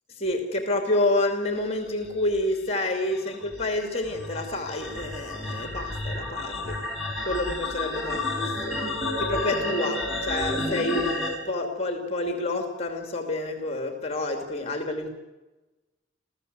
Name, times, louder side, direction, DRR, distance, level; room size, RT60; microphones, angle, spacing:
voice 1, 0.2-6.8 7.2-8.9 9.2-11.1 11.4-15.1, left 2 dB, 35° left, 5 dB, 2.8 m, -28 dB
sound 1, 2.0-11.3, left 2 dB, ahead, 6.2 m, -31 dB
27.5 x 16.0 x 8.1 m, 1.1 s
head